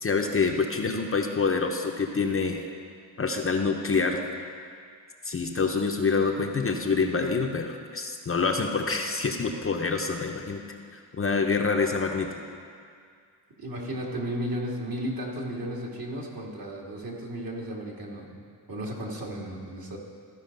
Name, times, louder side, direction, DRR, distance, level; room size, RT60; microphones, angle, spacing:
voice 1, 0.0-2.6 3.2-4.2 5.2-10.6 10.9-12.3, left 4 dB, 30° left, 2 dB, 0.8 m, -26 dB
voice 2, 13.6-18.4 18.7-20.0, equal, 50° right, -2 dB, 2.3 m, -34 dB
14.5 x 5.0 x 5.3 m, 2.2 s
cardioid pair, 65°, 45 cm